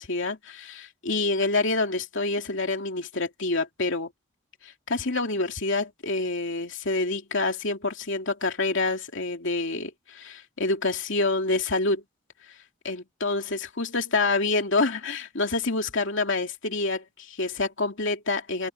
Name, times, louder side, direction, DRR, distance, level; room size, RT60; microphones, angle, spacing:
voice 1, 0.0-4.1 4.6-12.0 12.8-18.7, left 3 dB, 70° left, 2.8 m, -27 dB
head